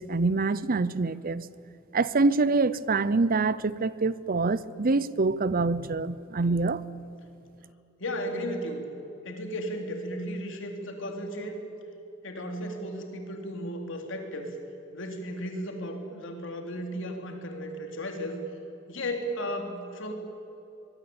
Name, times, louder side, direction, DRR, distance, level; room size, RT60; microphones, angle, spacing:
voice 1, 0.0-1.5 1.9-6.8, right 3 dB, 45° right, 0.7 m, -25 dB
voice 2, 8.0-8.8 9.2-11.6 12.2-14.6 14.9-18.4 18.9-20.1, equal, 65° left, 3.6 m, -35 dB
24.5 x 21.5 x 8.8 m
head